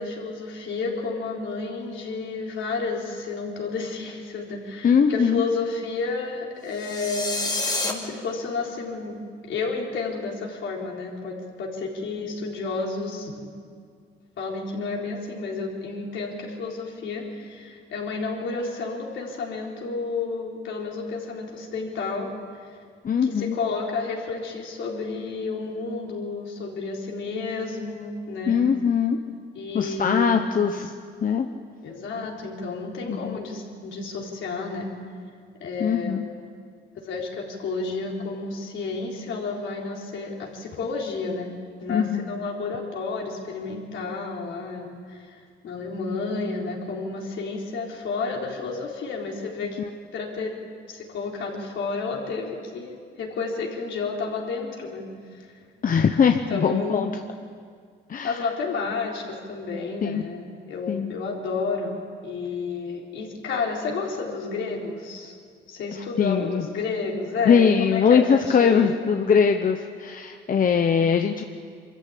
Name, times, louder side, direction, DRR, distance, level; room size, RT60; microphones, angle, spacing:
voice 1, 0.0-9.2 9.5-13.5 14.4-22.3 22.6-22.8 23.2-28.6 29.5-30.6 31.8-34.9 35.6-36.3 37.0-41.5 41.8-49.8 50.1-50.5 50.9-55.4 56.5-57.1 58.2-62.0 62.2-65.3 65.7-69.1, left 4 dB, 75° left, -1 dB, 4.1 m, -31 dB
voice 2, 4.8-5.4 23.0-23.6 28.5-29.2 29.7-30.9 31.2-31.5 33.1-33.4 35.8-36.3 41.9-42.3 49.8-49.9 55.8-57.1 58.1-58.4 60.0-60.2 60.9-61.1 66.2-66.6 67.4-71.4, left 6 dB, 45° left, 5 dB, 1.0 m, -21 dB
sound 1, 6.7-7.9, left 2 dB, 20° left, 2.6 m, -28 dB
24.0 x 14.0 x 8.7 m, 2.1 s
cardioid pair, 90°, 20 cm